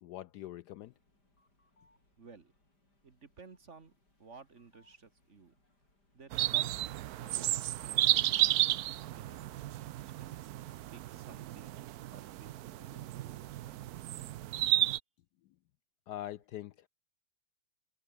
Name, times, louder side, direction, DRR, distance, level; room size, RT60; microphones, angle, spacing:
voice 1, 0.0-0.9 16.1-16.7, left 13 dB, 75° left, 1.0 m, -43 dB
sound 1, 0.8-11.6, left 2 dB, 55° left, 8.8 m, -72 dB
voice 2, 2.2-2.5 3.0-3.9 4.2-5.5 6.1-6.9 7.2-10.5 10.9-14.0, right 4 dB, 40° right, 1.8 m, -56 dB
sound 2, 6.3-15.0, right 14 dB, 70° right, 0.9 m, -32 dB
omnidirectional pair, 2.1 m